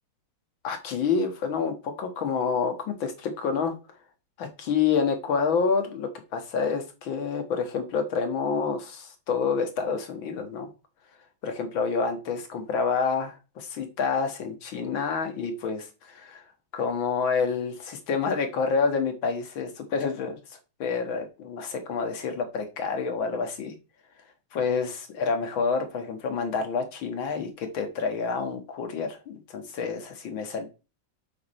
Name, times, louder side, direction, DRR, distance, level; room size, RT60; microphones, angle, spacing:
voice 1, 0.6-3.7 4.4-10.7 11.4-16.4 16.7-23.7 24.5-30.7, left 5 dB, 75° left, 6 dB, 2.3 m, -28 dB
8.4 x 6.5 x 4.3 m, 0.31 s
omnidirectional pair, 2.2 m